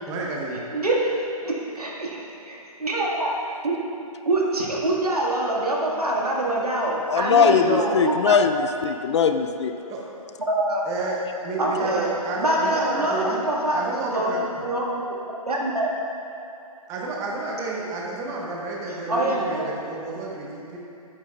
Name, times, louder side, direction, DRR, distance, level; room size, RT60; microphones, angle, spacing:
voice 1, 0.1-0.6 9.9-10.0 10.9-11.2 11.4-13.4 13.7-14.4 16.9-20.8, right 3 dB, 15° right, -3 dB, 1.0 m, -30 dB
voice 2, 0.7-2.2 2.5-3.3 3.6-3.8 4.2-8.3 10.5-11.1 11.6-12.1 12.4-14.8 15.4-15.9 18.9-19.6, right 1 dB, 90° right, -3 dB, 1.7 m, -25 dB
voice 3, 7.1-9.7, left 6 dB, 50° left, 8 dB, 0.4 m, -20 dB
11.0 x 8.7 x 2.3 m, 2.8 s
hypercardioid pair, 140°, 19 cm